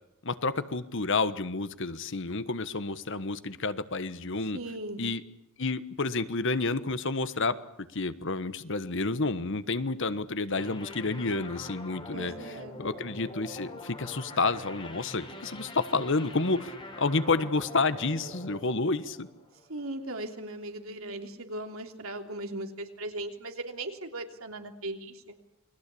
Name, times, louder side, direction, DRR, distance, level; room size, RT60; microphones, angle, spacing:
voice 1, 0.2-4.6 5.0-5.2 5.6-7.6 7.9-12.3 12.8-16.7 17.0-19.3, left 3 dB, 60° left, 13 dB, 1.3 m, -30 dB
voice 2, 4.5-5.0 12.1-12.8 19.7-25.3, right 1 dB, 70° right, 5 dB, 3.2 m, -38 dB
sound 1, 10.6-19.9, left 1 dB, 25° left, 3.9 m, -44 dB
29.0 x 21.5 x 8.5 m, 0.82 s
head